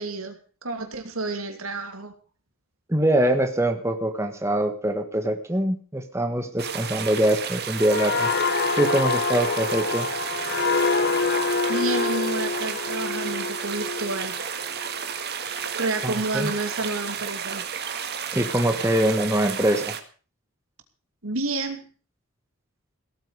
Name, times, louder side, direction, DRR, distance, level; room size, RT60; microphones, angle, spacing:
voice 1, 0.0-2.1 11.7-14.4 15.8-17.6 21.2-21.8, right 2 dB, 75° right, 6 dB, 2.8 m, -30 dB
voice 2, 2.9-8.3 8.8-10.1 16.0-16.5 18.3-19.9, right 1 dB, 15° right, 6 dB, 1.5 m, -23 dB
sound 1, 6.6-20.0, right 7 dB, 50° right, 1.8 m, -32 dB
sound 2, 7.8-15.3 15.7-15.9, left 4 dB, 50° left, 1.0 m, -26 dB
17.5 x 9.0 x 6.8 m, 0.38 s
head